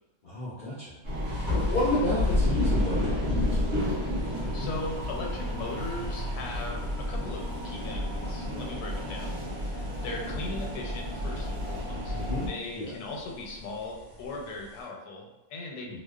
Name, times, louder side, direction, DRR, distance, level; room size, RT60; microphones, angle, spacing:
voice 1, 0.2-0.9 1.2-3.6 12.1-12.5 12.7-12.9 15.9-16.0, left 1 dB, 65° left, -9 dB, 0.5 m, -31 dB
sound 1, 1.0-12.5, left 1 dB, 55° right, 0.9 m, -30 dB
sound 2, 1.2-14.9, left 3 dB, 25° right, 0.7 m, -43 dB
voice 2, 4.5-12.1 12.4-16.0, left 2 dB, 80° left, -1 dB, 1.1 m, -39 dB
2.7 x 2.1 x 2.3 m, 1.0 s
omnidirectional pair, 1.6 m